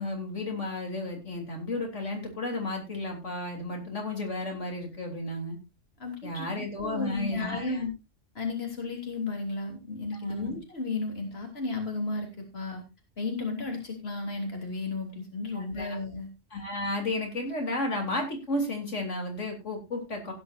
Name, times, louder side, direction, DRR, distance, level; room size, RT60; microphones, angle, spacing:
voice 1, 0.0-5.6 6.2-7.8 10.2-10.6 15.5-16.0 16.5-20.3, left 2 dB, 75° left, 2 dB, 3.8 m, -33 dB
voice 2, 6.0-6.5 6.8-7.9 8.4-12.8 13.2-16.3, left 3 dB, 55° left, 2 dB, 3.5 m, -33 dB
16.5 x 10.5 x 2.6 m, 0.26 s
omnidirectional pair, 1.3 m